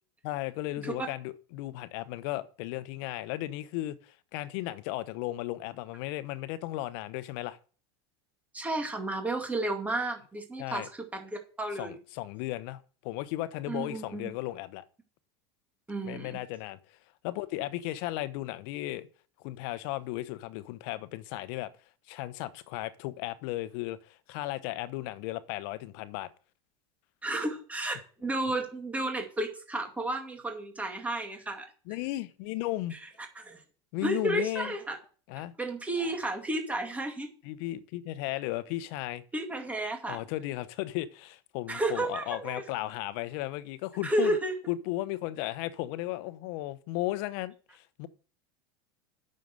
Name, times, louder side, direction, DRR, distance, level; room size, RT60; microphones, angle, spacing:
voice 1, 0.2-7.6 10.6-10.9 11.8-14.8 16.0-16.8 17.2-19.1 19.4-21.7 22.1-26.3 31.9-33.0 33.9-34.7 35.3-35.5 37.4-39.2 40.1-44.4 44.7-48.1, left 16 dB, 65° left, 1.0 m, -35 dB
voice 2, 8.5-12.0 13.7-14.3 15.9-16.4 27.2-31.7 32.9-33.1 33.4-33.6 34.0-35.0 35.6-37.3 39.3-40.2 41.7-42.6 44.0-44.5, right 2 dB, 10° right, 2.3 m, -32 dB
9.1 x 6.7 x 6.5 m
supercardioid pair, 125°, 14 cm